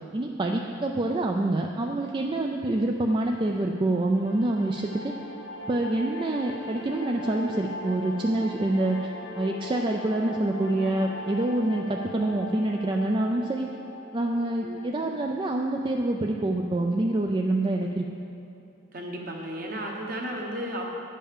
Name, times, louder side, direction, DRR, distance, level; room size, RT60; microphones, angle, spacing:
voice 1, 0.1-5.1 5.7-9.1 9.4-13.7 14.1-18.0, right 2 dB, 25° right, 2 dB, 0.3 m, -26 dB
sound 1, 4.2-15.2, left 1 dB, 70° left, 0.8 m, -39 dB
voice 2, 14.6-14.9 18.9-20.8, equal, 50° right, -1 dB, 1.2 m, -34 dB
9.8 x 5.5 x 6.6 m, 2.7 s
head